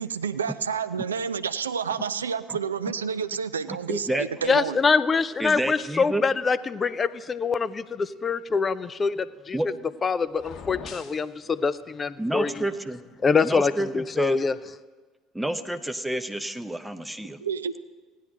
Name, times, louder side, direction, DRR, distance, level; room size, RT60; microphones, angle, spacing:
voice 1, 0.0-4.8 17.4-17.8, right 6 dB, 80° right, 13 dB, 0.3 m, -29 dB
voice 2, 3.7-4.3 5.4-6.2 9.5-9.7 12.2-13.0 13.4-14.4 15.3-17.4, right 1 dB, 5° right, 10 dB, 0.7 m, -29 dB
voice 3, 4.5-9.6 10.0-12.6 13.2-14.6, left 5 dB, 30° left, 16 dB, 0.4 m, -25 dB
sound 1, 10.3-11.3, left 6 dB, 45° left, 0.9 m, -41 dB
16.5 x 10.0 x 3.9 m, 1.4 s
figure-of-eight pair, 60°, 0 cm